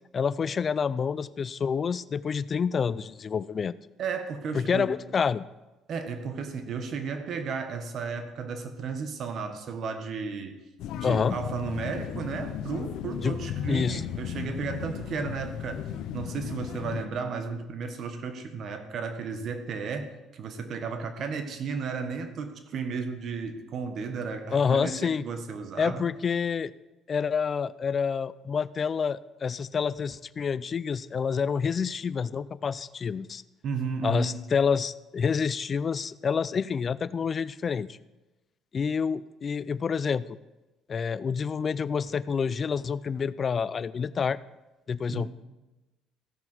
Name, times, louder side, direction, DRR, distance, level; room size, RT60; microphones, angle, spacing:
voice 1, 0.1-3.7 4.5-5.4 11.0-11.4 13.2-13.4 13.7-14.0 24.5-25.2 25.8-26.7 27.1-33.4 34.0-38.0 38.7-40.4 40.9-44.4 44.9-45.3, left 6 dB, 35° left, 18 dB, 0.3 m, -28 dB
voice 2, 4.0-4.9 5.9-10.6 11.0-15.8 16.1-26.0 33.6-34.4 45.1-45.3, right 5 dB, 55° right, 8 dB, 1.2 m, -34 dB
sound 1, 10.8-17.1, left 10 dB, 75° left, 0.6 m, -35 dB
15.5 x 5.9 x 4.5 m, 1.1 s
cardioid pair, 105°, 0 cm